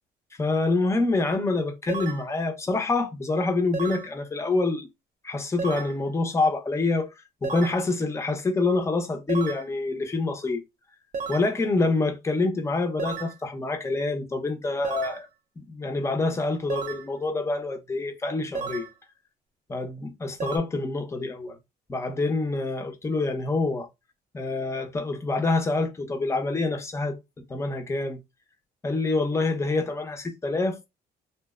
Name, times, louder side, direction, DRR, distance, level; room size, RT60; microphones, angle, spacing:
voice 1, 0.4-4.9 5.2-7.1 7.4-10.6 11.3-15.3 15.6-18.9 19.7-21.6 21.9-23.9 24.3-27.2 27.5-28.2 28.8-30.9, left 3 dB, 15° left, 0.5 m, -26 dB
sound 1, 1.9-2.3 3.7-4.1 5.6-6.0 7.4-7.8 9.3-9.7 11.1-11.5 13.0-13.4 14.8-15.2 16.7-17.1 18.5-18.9 20.4-20.6, right 5 dB, 45° right, 0.5 m, -33 dB
2.7 x 2.0 x 2.2 m
cardioid pair, 110°, 17 cm